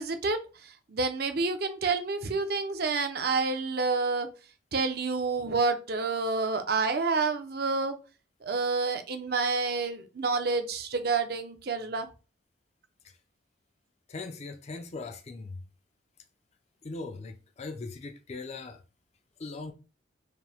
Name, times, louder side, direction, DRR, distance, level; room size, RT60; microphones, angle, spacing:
voice 1, 0.0-4.3 4.7-7.9 8.4-12.1, right 4 dB, 50° right, 0.6 m, -29 dB
voice 2, 14.1-15.6 16.8-18.8 19.4-19.7, left 3 dB, 35° left, 0.4 m, -39 dB
4.9 x 2.1 x 3.4 m
head